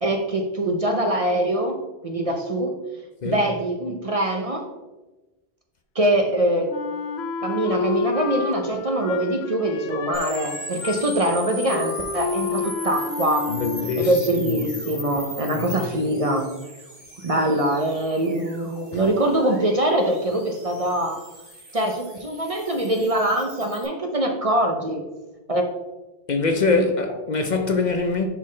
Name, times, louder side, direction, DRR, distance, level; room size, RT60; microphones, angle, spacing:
voice 1, 0.0-1.8 2.0-2.7 3.2-4.7 6.0-6.7 7.4-13.5 14.0-16.5 17.2-21.2 21.7-25.0 25.5-25.7 26.8-26.9, right 1 dB, 40° right, 0.6 m, -23 dB
Wind instrument woodwind instrument, 6.7-14.2, left 5 dB, 80° left, 0.9 m, -30 dB
sound 1, 10.1-23.8, right 1 dB, 60° right, 2.2 m, -39 dB
voice 2, 13.5-14.6 15.5-16.1 26.3-28.3, left 4 dB, 50° left, 0.7 m, -24 dB
10.0 x 3.8 x 3.2 m
omnidirectional pair, 1.1 m